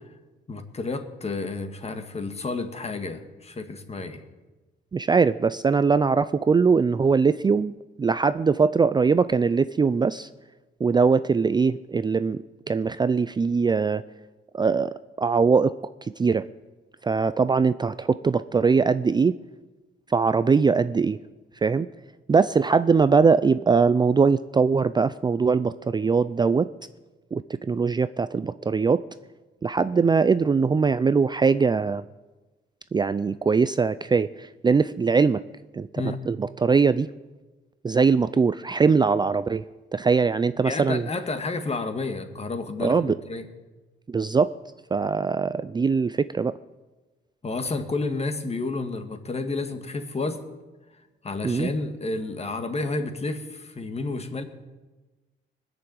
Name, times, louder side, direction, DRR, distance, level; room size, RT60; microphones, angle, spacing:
voice 1, 0.5-4.2 36.0-36.2 40.6-43.5 47.4-50.4 51.2-54.4, left 3 dB, 30° left, 7 dB, 1.9 m, -30 dB
voice 2, 4.9-10.3 10.8-14.0 14.5-15.7 16.0-16.4 17.0-19.4 20.1-21.2 21.6-21.9 22.3-26.7 27.3-29.0 29.6-32.0 32.9-35.4 35.7-37.1 37.8-39.6 39.9-41.1 42.8-43.2 44.1-44.5 44.9-46.5 51.4-51.7, right 5 dB, 20° right, 14 dB, 0.4 m, -21 dB
20.5 x 7.0 x 8.9 m, 1.2 s
cardioid pair, 90°, 20 cm